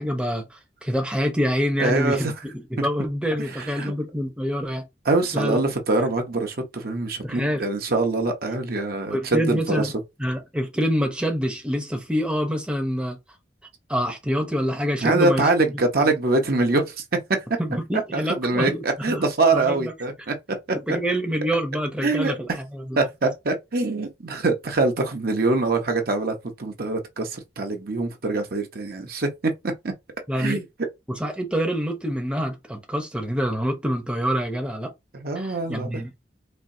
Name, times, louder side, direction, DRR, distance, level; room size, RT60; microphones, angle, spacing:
voice 1, 0.0-4.9 5.3-5.6 7.2-7.6 9.1-9.9 10.2-13.2 13.9-15.5 17.6-19.2 19.5-19.9 20.7-23.0 30.3-30.6 31.1-34.9 35.4-36.1, equal, 5° right, 0.7 m, -26 dB
voice 2, 1.8-2.3 2.8-2.9 3.6-3.9 5.1-9.9 15.0-17.0 18.1-20.3 20.7-21.0 22.0-22.3 23.0-29.5 29.8-29.9 30.4-30.6 35.1-35.9, right 3 dB, 55° right, 0.8 m, -24 dB
4.3 x 2.7 x 2.6 m
head